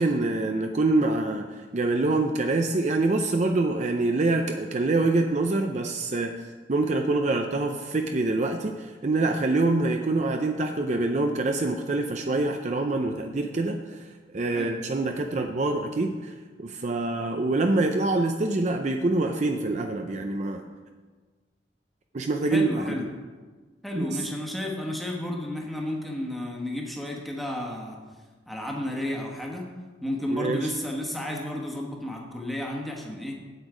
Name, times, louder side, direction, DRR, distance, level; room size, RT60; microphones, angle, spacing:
voice 1, 0.0-6.3 6.7-14.0 14.3-20.6 22.1-22.9 23.9-24.3 30.3-30.7, right 2 dB, 40° right, 4 dB, 0.5 m, -25 dB
voice 2, 22.5-23.1 23.8-28.0 28.5-29.7 30.0-33.4, left 1 dB, ahead, -1 dB, 1.3 m, -32 dB
8.2 x 8.0 x 5.0 m, 1.4 s
head